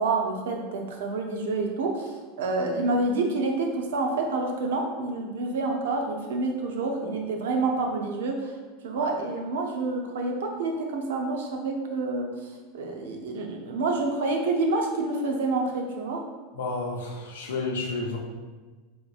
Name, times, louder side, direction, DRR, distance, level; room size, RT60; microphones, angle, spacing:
voice 1, 0.0-8.6 8.8-16.2, right 3 dB, 75° right, 2 dB, 0.5 m, -28 dB
voice 2, 16.5-18.2, left 3 dB, 75° left, 0 dB, 0.6 m, -31 dB
4.3 x 2.9 x 2.3 m, 1.3 s
hypercardioid pair, 85°, 0 cm